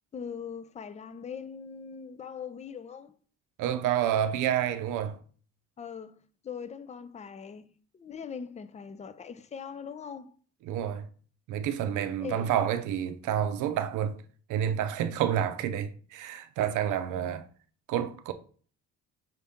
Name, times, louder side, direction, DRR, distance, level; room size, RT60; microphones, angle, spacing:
voice 1, 0.1-3.2 5.8-10.3 12.2-12.5, left 6 dB, 25° left, 0.4 m, -41 dB
voice 2, 3.6-5.2 10.6-11.1 11.5-14.2 14.5-17.5 17.9-18.3, right 10 dB, 85° right, 0.5 m, -29 dB
5.7 x 2.7 x 3.5 m
cardioid pair, 90°, 30 cm